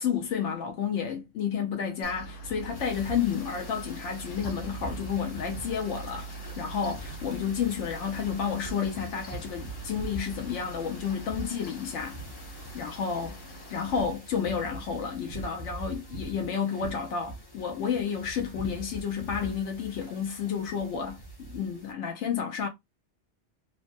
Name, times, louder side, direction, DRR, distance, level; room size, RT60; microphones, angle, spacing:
voice 1, 0.0-12.2 12.7-13.4 13.7-22.7, left 7 dB, 85° left, 0.9 m, -31 dB
Mechanical fan, 2.0-14.0, right 2 dB, 55° left, 0.8 m, -43 dB
sound 1, 2.6-21.9, right 2 dB, 25° left, 0.7 m, -43 dB
3.2 x 2.2 x 2.6 m
omnidirectional pair, 1.2 m